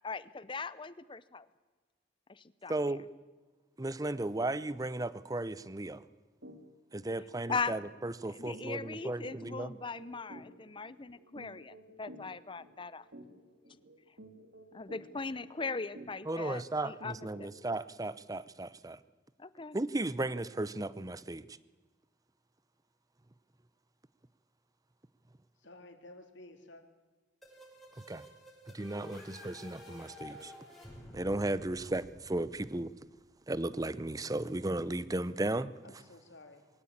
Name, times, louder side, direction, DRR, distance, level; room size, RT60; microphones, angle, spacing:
voice 1, 0.0-1.4 2.3-3.0 7.5-7.8 8.3-13.0 14.7-17.1 17.4-17.5 19.4-19.8, left 4 dB, 25° left, 16 dB, 0.7 m, -39 dB
voice 2, 2.7-3.1 3.8-6.0 6.9-9.8 16.2-19.0 19.7-21.6 28.1-28.2 28.7-30.5 31.1-32.9 33.5-35.7, right 2 dB, 20° right, 17 dB, 0.6 m, -35 dB
sound 1, 6.4-6.6 6.9-7.1 7.5-17.7, right 1 dB, 70° right, 2.6 m, -53 dB
voice 3, 25.6-26.8 35.8-36.7, left 2 dB, 75° left, 6 dB, 2.7 m, -53 dB
sound 2, 27.4-33.1, left 1 dB, ahead, 6.4 m, -51 dB
22.5 x 17.0 x 8.7 m, 1.3 s
head